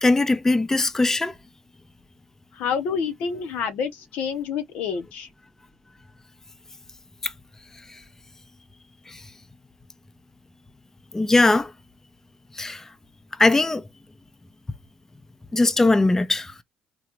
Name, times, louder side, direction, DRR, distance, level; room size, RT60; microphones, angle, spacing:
voice 1, 0.0-1.3 7.2-7.3 9.1-9.2 11.1-11.7 12.5-12.8 13.4-13.8 15.5-16.6, left 2 dB, 15° left, 0.6 m, -20 dB
voice 2, 2.6-5.3, left 6 dB, 75° left, 0.8 m, -28 dB
3.8 x 2.3 x 2.9 m
supercardioid pair, 70°, 2 cm